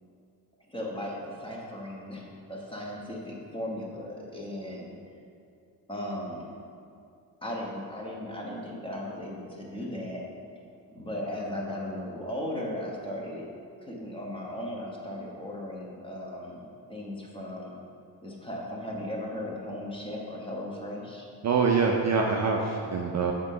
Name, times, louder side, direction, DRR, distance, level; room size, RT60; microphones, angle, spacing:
voice 1, 0.7-4.9 5.9-6.5 7.4-10.2 10.9-13.4 13.8-17.7 18.2-21.3, left 1 dB, 10° left, -3 dB, 1.1 m, -37 dB
voice 2, 21.4-23.3, right 5 dB, 40° right, 0 dB, 0.5 m, -25 dB
6.0 x 3.7 x 5.6 m, 2.5 s
cardioid pair, 110°, 44 cm